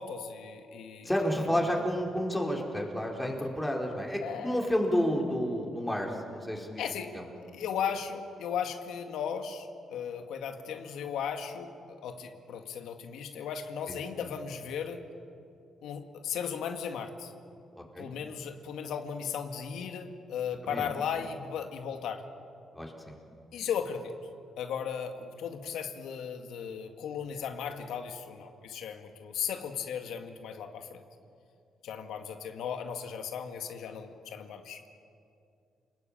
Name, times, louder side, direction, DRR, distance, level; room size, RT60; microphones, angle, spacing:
voice 1, 0.0-1.1 1.6-1.8 4.2-4.6 6.8-7.2 7.5-15.0 15.8-17.3 18.0-22.3 23.5-24.1 24.6-31.0 31.8-34.9, left 7 dB, 85° left, 5 dB, 1.9 m, -36 dB
voice 2, 1.0-6.8 7.1-7.2 13.9-14.0 17.8-18.1 20.6-20.9 22.7-23.1, equal, 5° left, 0 dB, 4.6 m, -30 dB
29.5 x 20.5 x 8.9 m, 2.5 s
cardioid pair, 100°, 0 cm